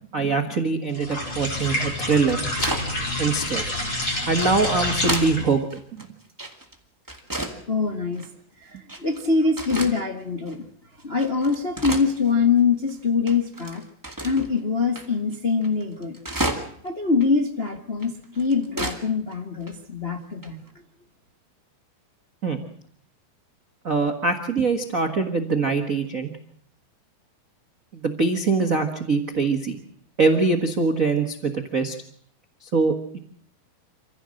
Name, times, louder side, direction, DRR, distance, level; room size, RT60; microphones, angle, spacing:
voice 1, 0.1-2.5 3.2-3.6 4.3-5.6 6.0-6.1 22.4-22.6 23.8-26.3 27.9-29.7 30.2-32.0 32.6-33.2, right 4 dB, 90° right, 4 dB, 0.7 m, -23 dB
sound 1, 0.9-5.6, left 1 dB, 25° left, 5.3 m, -28 dB
sound 2, 1.5-2.9 3.3-3.5 4.1-5.4 5.7-6.7 7.1-7.6 8.1-8.3 8.9-9.3 9.6-9.9 10.5-10.6 11.0-12.6 12.9-13.0 13.3-14.5 14.9-15.1 15.3-15.4 15.6-16.9 17.2-17.3 18.0-19.0 19.3-19.4 19.6-19.7 20.4-20.7, right 1 dB, 10° right, 1.1 m, -31 dB
voice 2, 7.7-8.2 9.0-10.6 11.0-13.8 14.2-16.2 16.8-20.6, left 5 dB, 70° left, 2 dB, 0.5 m, -23 dB
26.5 x 16.0 x 7.7 m, 0.64 s
omnidirectional pair, 4.3 m